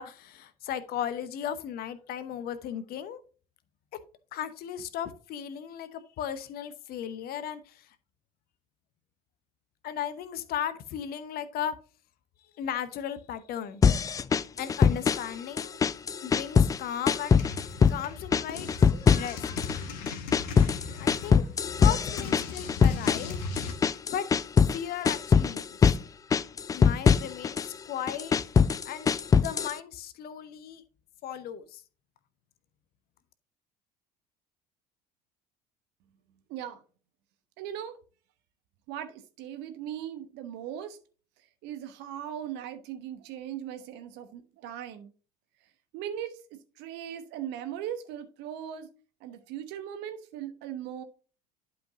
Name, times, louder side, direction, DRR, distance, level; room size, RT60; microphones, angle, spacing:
voice 1, 0.0-3.2 4.3-7.9 9.8-11.7 12.6-14.2 14.6-15.8 16.2-17.4 17.9-19.4 21.0-21.4 21.8-23.4 24.1-24.3 24.7-25.9 26.7-28.3 28.8-30.8 31.2-31.8, left 9 dB, 45° left, 0.9 m, -36 dB
sound 1, 13.8-15.3 15.6-16.8 17.1-18.0 18.3-19.8 20.1-24.8 25.0-26.0 26.3-27.7 28.1-29.8, left 6 dB, 15° left, 0.3 m, -23 dB
sound 2, 17.3-23.7, left 4 dB, 65° left, 1.3 m, -39 dB
voice 2, 36.5-36.8 37.6-38.0 38.9-41.0 41.6-45.1 45.9-48.9 49.2-51.0, right 10 dB, 55° right, 1.1 m, -39 dB
11.5 x 5.0 x 2.7 m
figure-of-eight pair, 60°, 21 cm